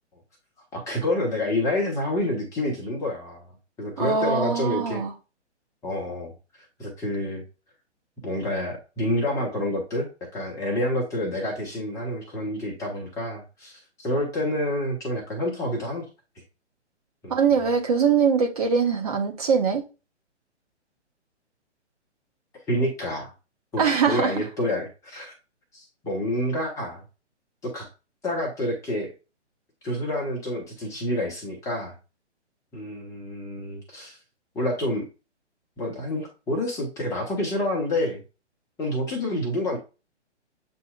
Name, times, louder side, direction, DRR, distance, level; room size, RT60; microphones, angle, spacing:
voice 1, 0.7-3.5 3.8-5.0 5.8-7.4 8.2-16.0 17.2-17.4 22.7-23.3 23.7-25.3 25.7-27.0 27.7-27.9 28.2-29.1 29.8-31.9 32.7-34.2 34.5-35.1 35.8-38.2 38.8-39.8, left 1 dB, 10° left, 0.8 m, -28 dB
voice 2, 4.0-5.1 17.3-19.8 23.8-24.3, right 6 dB, 35° right, 0.7 m, -22 dB
7.6 x 2.7 x 2.3 m
figure-of-eight pair, 130°, 36 cm